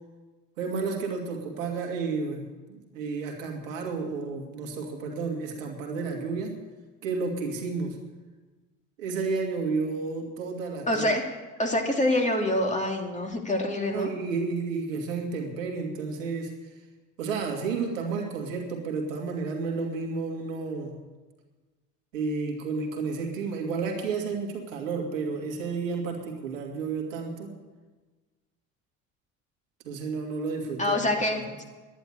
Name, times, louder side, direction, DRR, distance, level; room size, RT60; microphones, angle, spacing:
voice 1, 0.6-6.6 7.0-8.0 9.0-11.0 13.9-16.5 17.2-21.0 22.1-27.5 29.8-31.0 31.3-31.6, right 4 dB, 85° right, 3 dB, 2.2 m, -31 dB
voice 2, 10.9-11.3 11.6-14.1 30.8-31.6, left 1 dB, 20° left, 1 dB, 2.9 m, -26 dB
11.0 x 10.5 x 8.4 m, 1.3 s
hypercardioid pair, 60°, 38 cm